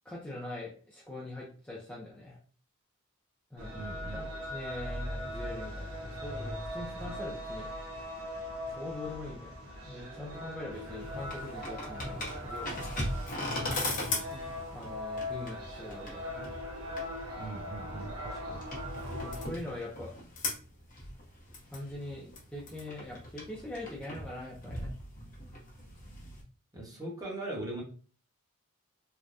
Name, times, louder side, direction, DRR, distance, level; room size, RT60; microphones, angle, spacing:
voice 1, 0.0-2.4 3.5-3.8 4.1-7.7 8.7-13.0 14.0-16.5 18.2-18.4 19.2-20.1 21.7-24.9, left 1 dB, 5° left, -5 dB, 0.5 m, -43 dB
sound 1, 3.6-19.5, left 1 dB, 80° right, 1.0 m, -40 dB
voice 2, 3.7-4.3 17.3-18.6 26.7-27.8, right 2 dB, 15° right, -2 dB, 1.0 m, -40 dB
sound 2, 10.7-26.4, left 2 dB, 40° left, 1.0 m, -39 dB
3.3 x 2.1 x 2.5 m, 0.40 s
head